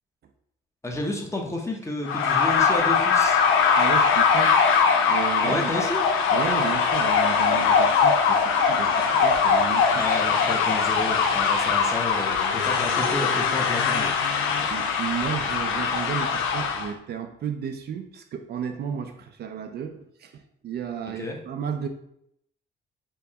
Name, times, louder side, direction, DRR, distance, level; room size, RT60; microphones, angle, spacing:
voice 1, 0.8-3.4 5.4-6.0 9.9-14.5 21.2-21.4, left 1 dB, 15° left, 1 dB, 0.7 m, -31 dB
sound 1, 2.0-16.9, left 6 dB, 85° left, 0.5 m, -21 dB
voice 2, 3.8-4.6 5.1-5.7 6.3-10.0 14.7-21.9, right 7 dB, 55° right, 6 dB, 0.4 m, -33 dB
4.5 x 2.1 x 2.7 m, 0.74 s
cardioid pair, 90°, 20 cm